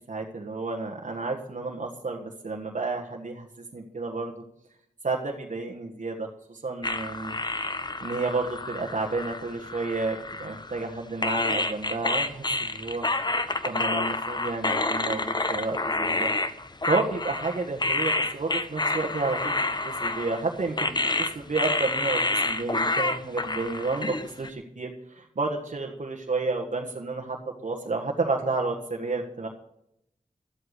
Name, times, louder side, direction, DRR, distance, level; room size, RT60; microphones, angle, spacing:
voice 1, 0.1-3.5 3.7-4.4 5.0-7.4 8.0-13.1 13.6-16.3 16.8-27.4 27.6-29.5, right 3 dB, 65° right, 0 dB, 1.5 m, -31 dB
sound 1, 6.8-10.9 11.2-24.5, left 2 dB, 30° left, 1.0 m, -28 dB
12.0 x 8.0 x 8.1 m, 0.78 s
cardioid pair, 55°, 14 cm